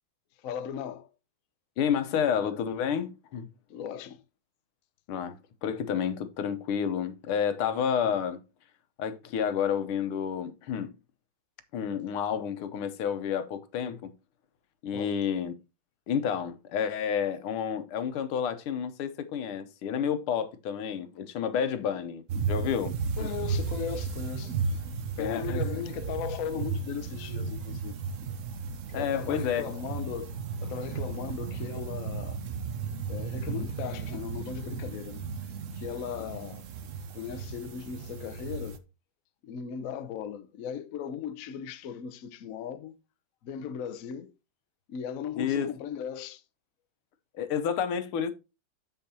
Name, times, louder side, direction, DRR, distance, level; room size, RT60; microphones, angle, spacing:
voice 1, 0.4-1.1 3.7-4.2 14.9-15.2 23.2-24.8 25.2-28.0 28.9-30.3 30.6-32.4 33.1-35.2 35.7-36.6 37.1-38.8 39.4-42.9 43.4-44.3 44.9-46.4, left 8 dB, 65° left, 0.8 m, -37 dB
voice 2, 1.8-3.5 5.1-8.4 9.0-10.9 11.7-14.1 14.8-15.5 16.1-23.3 25.2-25.6 28.9-29.6 33.5-33.6 45.4-45.7 47.3-48.3, left 8 dB, 90° left, 1.8 m, -30 dB
sound 1, 22.3-38.8, right 5 dB, 70° right, 0.7 m, -34 dB
7.5 x 7.1 x 2.7 m
omnidirectional pair, 2.3 m